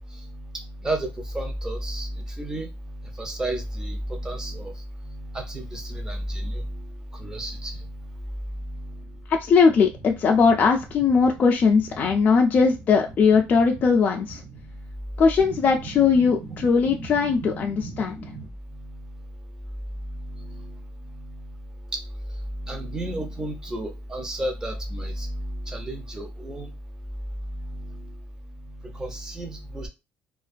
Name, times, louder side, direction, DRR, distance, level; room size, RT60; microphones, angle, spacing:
voice 1, 0.1-8.2 8.5-9.2 10.3-10.4 12.1-12.2 13.3-13.4 14.3-15.0 15.4-19.2 20.0-21.6 21.9-22.0 22.5-26.7 27.4-28.2 28.6-29.9, right 1 dB, 15° right, 0.6 m, -33 dB
voice 2, 9.3-14.4 15.2-18.2, left 5 dB, 35° left, 0.3 m, -20 dB
2.4 x 2.2 x 2.4 m
cardioid pair, 150°, 5 cm